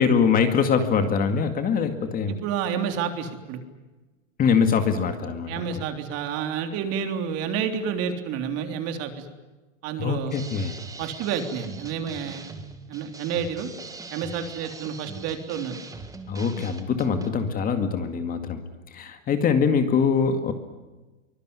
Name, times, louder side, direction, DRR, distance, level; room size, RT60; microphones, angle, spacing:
voice 1, 0.0-2.3 4.4-5.8 10.0-10.8 16.3-18.6 18.9-20.5, left 6 dB, 20° left, 7 dB, 2.1 m, -23 dB
voice 2, 2.3-3.6 5.5-9.3 9.8-10.4 11.0-12.4 12.9-13.7 14.1-15.8, right 7 dB, 40° right, 6 dB, 3.5 m, -29 dB
sound 1, 10.3-17.3, right 3 dB, 10° right, 1.9 m, -41 dB
24.0 x 22.5 x 9.7 m, 1.2 s
supercardioid pair, 145°, 38 cm